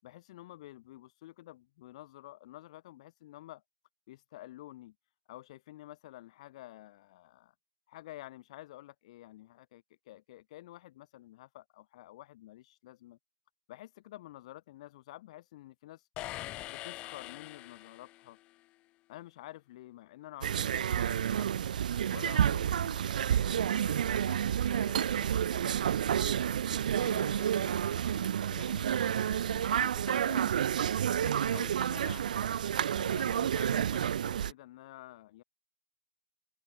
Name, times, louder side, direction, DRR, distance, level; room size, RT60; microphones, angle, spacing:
voice 1, 0.0-3.6 4.1-4.9 5.3-7.5 7.9-13.2 13.7-16.1 16.6-18.4 19.1-21.5 22.1-26.3 26.9-27.8 28.1-28.9 29.5-30.6 31.1-32.3 32.9-35.4, left 16 dB, 40° left, 7.6 m, -50 dB
sound 1, 16.2-18.4, left 18 dB, 20° left, 0.7 m, -43 dB
sound 2, 20.4-34.5, right 9 dB, 55° right, 0.6 m, -30 dB
figure-of-eight pair, 135°, 5 cm